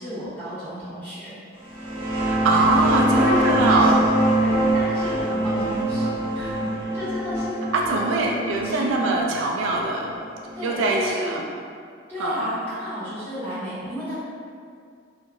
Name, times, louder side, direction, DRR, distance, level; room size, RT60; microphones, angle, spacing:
voice 1, 0.0-1.3 3.1-4.1 4.4-7.6 8.0-8.4 8.6-9.1 9.7-10.0 10.5-11.4 12.1-14.1, left 1 dB, 10° left, -15 dB, 1.2 m, -32 dB
sound 1, 1.6-10.9, right 1 dB, 30° left, 1.1 m, -24 dB
voice 2, 2.2-4.0 7.7-10.1 10.6-11.4 12.2-12.5, right 3 dB, 80° right, 0 dB, 0.3 m, -22 dB
2.9 x 2.4 x 2.2 m, 2.2 s
head